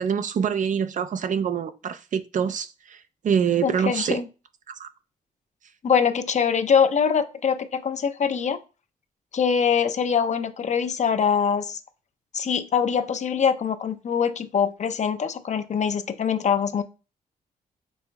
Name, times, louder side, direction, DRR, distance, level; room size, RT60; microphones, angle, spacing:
voice 1, 0.0-4.2 4.7-4.9, right 7 dB, 55° right, 0.4 m, -25 dB
voice 2, 3.6-4.2 5.8-8.6 9.3-11.8 12.3-16.8, left 7 dB, 50° left, 0.5 m, -23 dB
5.3 x 2.9 x 2.3 m
cardioid pair, 70°, 15 cm